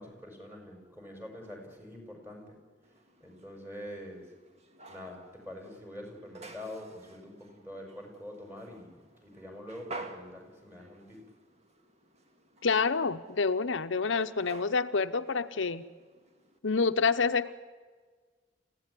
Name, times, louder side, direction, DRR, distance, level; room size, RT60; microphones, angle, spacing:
voice 1, 0.0-4.3 4.9-8.9 9.2-11.2, left 1 dB, 10° right, 2 dB, 6.2 m, -45 dB
sound 1, 2.8-16.6, right 3 dB, 35° right, 2.1 m, -51 dB
voice 2, 12.6-15.8 16.6-17.5, left 4 dB, 75° left, 9 dB, 0.8 m, -28 dB
29.0 x 16.0 x 9.9 m, 1.5 s
head